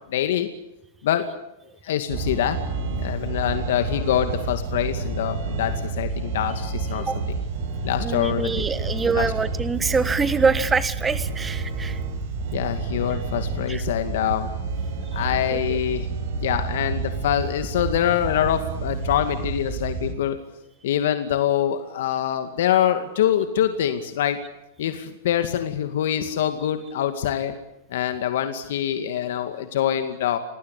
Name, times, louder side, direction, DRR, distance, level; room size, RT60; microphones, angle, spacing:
voice 1, 0.1-0.5 1.0-1.2 1.8-2.6 2.9-7.3 7.8-9.3 12.5-14.5 15.1-16.1 16.4-20.4 20.8-24.4 24.8-27.5 27.9-30.4, left 10 dB, 65° left, 8 dB, 2.3 m, -25 dB
sound 1, 2.1-20.1, right 4 dB, 55° right, 6.4 m, -29 dB
voice 2, 8.0-12.0 13.7-13.8 15.5-15.8, right 4 dB, 10° right, 14 dB, 1.3 m, -24 dB
27.0 x 19.5 x 8.5 m, 0.87 s
supercardioid pair, 155°, 0 cm